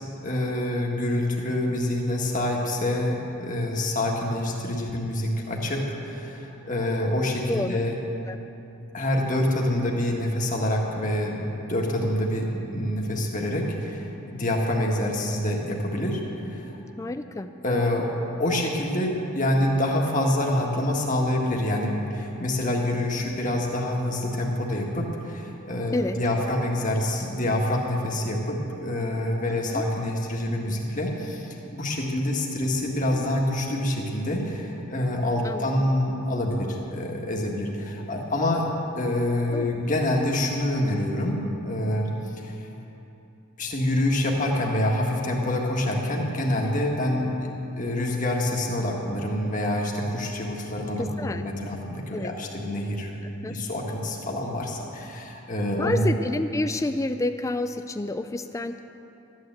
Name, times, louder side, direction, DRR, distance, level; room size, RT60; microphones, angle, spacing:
voice 1, 0.2-7.9 8.9-16.8 17.6-18.1 18.4-38.7 39.0-42.5 43.6-53.1 53.5-56.1, left 1 dB, 35° left, -1 dB, 1.7 m, -26 dB
voice 2, 7.5-7.8 8.3-8.4 17.0-17.5 25.9-26.2 29.7-29.8 35.4-35.7 39.5-39.7 51.0-51.4 52.1-52.3 53.2-53.5 55.8-58.8, left 2 dB, 15° left, 8 dB, 0.3 m, -29 dB
13.0 x 9.7 x 7.8 m, 3.0 s
head